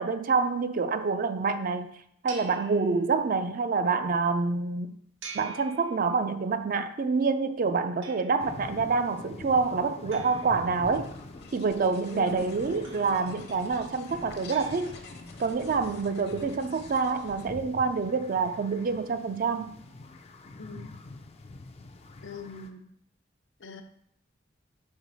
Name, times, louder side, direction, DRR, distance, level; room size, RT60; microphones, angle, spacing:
voice 1, 0.0-1.9 2.2-5.0 5.3-11.1 11.5-14.9 15.4-19.8, right 4 dB, 45° right, 0.4 m, -27 dB
sound 1, 2.3-3.5 5.2-6.5 8.0-8.7 10.1-11.3 12.8-13.5 14.5-15.4, right 5 dB, 85° right, 1.0 m, -47 dB
sound 2, 8.4-22.7, left 2 dB, 35° left, 0.4 m, -45 dB
sound 3, 10.8-17.5, left 3 dB, 60° left, 0.9 m, -49 dB
voice 2, 12.1-12.4 20.6-21.0 22.2-22.9 23.6-23.8, left 3 dB, 75° left, 0.7 m, -41 dB
5.4 x 4.6 x 4.0 m
head